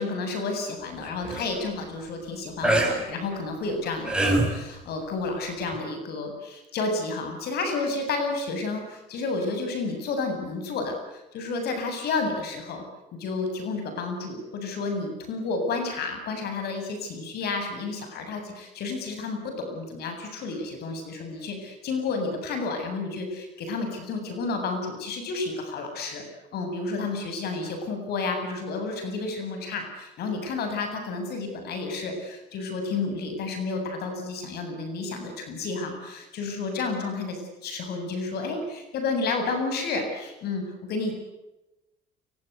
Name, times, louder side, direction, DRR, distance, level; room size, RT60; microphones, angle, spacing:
voice 1, 0.0-12.8 13.1-26.3 26.5-41.1, left 3 dB, 70° left, 5 dB, 7.8 m, -31 dB
sound 1, 1.0-1.4 2.6-2.9 3.8-4.6 5.7-5.8, right 1 dB, 5° right, 6.5 m, -23 dB
29.5 x 24.0 x 8.3 m, 0.98 s
cardioid pair, 110°, 17 cm